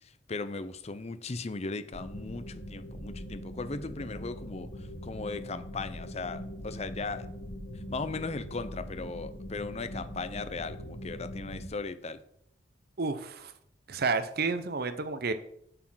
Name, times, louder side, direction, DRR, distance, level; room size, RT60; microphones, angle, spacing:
voice 1, 0.3-4.7 5.0-7.3 7.9-12.2, left 3 dB, 35° left, 12 dB, 0.6 m, -37 dB
sound 1, 1.9-11.7, equal, 80° left, 2.1 m, -42 dB
voice 2, 13.0-13.5 13.9-15.3, right 4 dB, 55° right, 11 dB, 0.8 m, -30 dB
7.8 x 6.3 x 6.2 m, 0.72 s
head